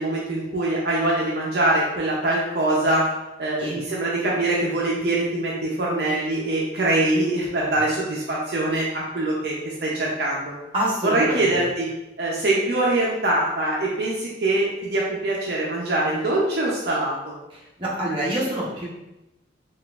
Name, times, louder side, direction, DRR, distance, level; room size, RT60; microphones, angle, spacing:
voice 1, 0.0-3.1 3.4-10.5 11.0-11.9 12.2-17.2, right 2 dB, 60° right, -4 dB, 0.5 m, -23 dB
voice 2, 10.7-11.6 17.5-18.9, right 1 dB, 25° right, -6 dB, 0.9 m, -27 dB
3.8 x 2.4 x 2.4 m, 0.93 s
head